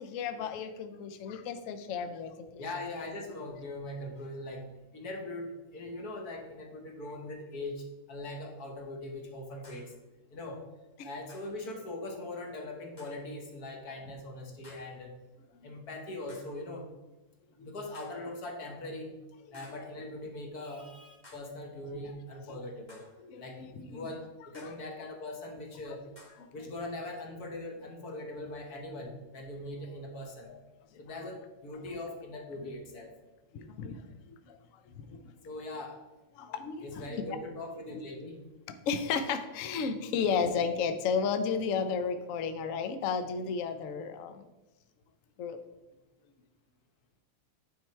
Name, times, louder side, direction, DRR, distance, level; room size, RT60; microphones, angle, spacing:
voice 1, 0.0-2.6 11.0-11.1 15.5-15.7 17.6-17.7 19.5-19.6 21.9-22.2 23.2-24.1 24.5-24.7 25.9-26.0 26.4-26.5 30.9-31.3 32.6-32.7 33.5-34.6 34.8-35.3 36.3-37.2 38.9-44.5 45.4-45.6, left 6 dB, 85° left, 8 dB, 0.7 m, -34 dB
voice 2, 2.6-9.9 10.3-10.6 11.0-15.2 15.6-16.9 17.6-19.1 19.5-23.1 23.4-26.0 26.5-30.6 31.0-33.1 35.4-36.0 36.8-38.4, left 2 dB, 55° left, 2 dB, 1.4 m, -41 dB
sound 1, 8.2-8.3 9.6-10.0 11.3-11.6 13.0-13.3 14.6-15.0 16.3-16.7 17.9-18.3 19.5-19.9 21.2-21.6 22.9-23.3 24.5-24.9 26.2-26.5, left 1 dB, 25° left, 1.4 m, -56 dB
9.6 x 3.8 x 4.4 m, 1.1 s
omnidirectional pair, 2.2 m